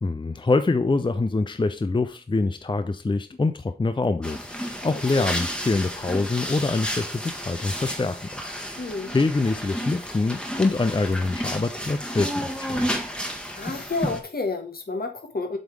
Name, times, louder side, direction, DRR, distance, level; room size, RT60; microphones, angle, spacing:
voice 1, 0.0-8.5 9.1-12.9, left 3 dB, 30° left, 0.5 m, -25 dB
sound 1, 4.2-14.2, equal, 5° left, 1.3 m, -32 dB
voice 2, 8.8-9.1 13.6-15.6, left 3 dB, 65° left, 1.6 m, -30 dB
7.7 x 3.6 x 4.6 m
wide cardioid pair, 60°, 17 cm